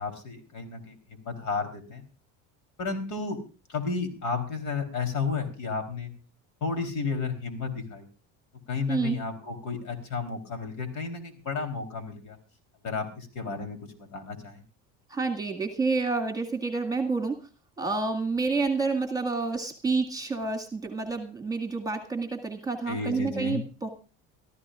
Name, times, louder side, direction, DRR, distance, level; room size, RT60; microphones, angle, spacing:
voice 1, 0.0-2.0 2.8-3.4 3.7-6.1 6.6-8.1 8.7-12.4 12.8-14.6 22.9-23.6, left 4 dB, 60° left, 7 dB, 3.8 m, -32 dB
voice 2, 15.1-17.5 17.8-23.9, right 4 dB, 10° right, 2 dB, 2.0 m, -29 dB
24.5 x 14.0 x 2.5 m, 0.33 s
cardioid pair, 140°, 34 cm